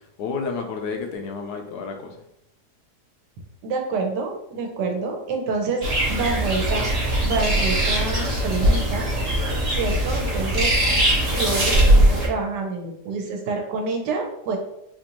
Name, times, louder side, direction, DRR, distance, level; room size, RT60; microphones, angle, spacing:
voice 1, 0.0-2.2, left 4 dB, 75° left, 4 dB, 1.1 m, -31 dB
voice 2, 3.6-5.8 6.1-6.9 7.2-9.1 9.7-10.7 11.3-14.6, right 4 dB, 85° right, 2 dB, 1.3 m, -27 dB
sound 1, 5.8-12.3, right 1 dB, 30° right, 0.7 m, -20 dB
4.2 x 2.5 x 2.9 m, 0.78 s
omnidirectional pair, 1.8 m